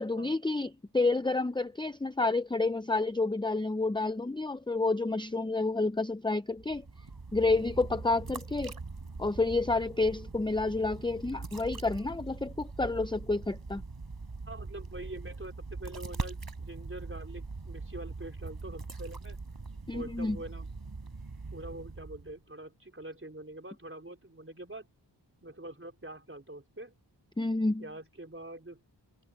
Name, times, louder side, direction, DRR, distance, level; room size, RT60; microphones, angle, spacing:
voice 1, 0.0-6.8 7.3-8.7 9.2-13.8 19.9-20.4 27.4-27.8, left 3 dB, 10° left, 0.6 m, -29 dB
sound 1, 6.5-22.4, right 3 dB, 55° right, 4.3 m, -42 dB
voice 2, 14.5-19.4 19.9-20.7 21.5-24.9 25.4-26.9 27.8-28.8, right 1 dB, 30° right, 4.8 m, -45 dB
wide cardioid pair, 65°, 44 cm